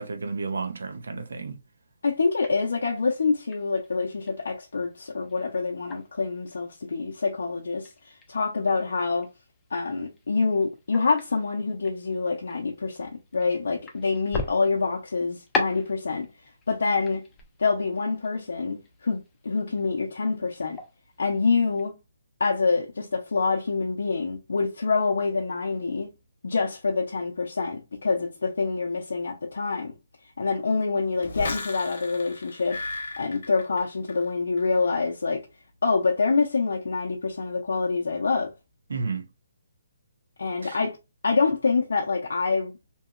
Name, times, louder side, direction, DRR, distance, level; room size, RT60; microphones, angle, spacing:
voice 1, 0.0-1.6 38.9-39.2 40.6-40.8, right 4 dB, 80° right, 0.6 m, -32 dB
voice 2, 2.0-9.3 9.7-16.3 16.7-17.2 17.6-20.8 21.2-21.9 22.4-26.1 26.4-29.9 30.4-32.8 33.2-35.5 35.8-38.5 40.4-41.0 41.2-42.7, left 4 dB, 85° left, 0.5 m, -26 dB
sound 1, 2.1-21.8, left 3 dB, 10° left, 0.3 m, -41 dB
sound 2, 31.2-34.3 34.6-35.0, left 2 dB, 50° left, 0.8 m, -36 dB
2.8 x 2.7 x 2.4 m
hypercardioid pair, 175°, 0 cm